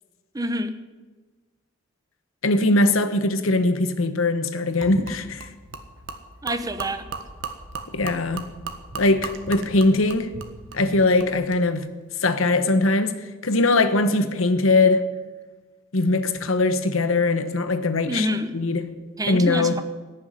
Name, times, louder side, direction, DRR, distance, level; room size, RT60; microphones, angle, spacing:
voice 1, 0.3-0.7 6.4-7.1 18.1-18.5 19.2-19.8, equal, 20° right, 0.9 m, -26 dB
voice 2, 2.4-5.5 7.9-8.5 9.0-10.3 10.7-11.9 12.2-15.1 15.9-18.3 18.5-18.9 19.3-19.8, left 2 dB, 85° left, 1.2 m, -21 dB
Gurgling / Liquid, 4.8-11.6, right 4 dB, 65° right, 1.5 m, -37 dB
17.5 x 7.1 x 10.0 m
head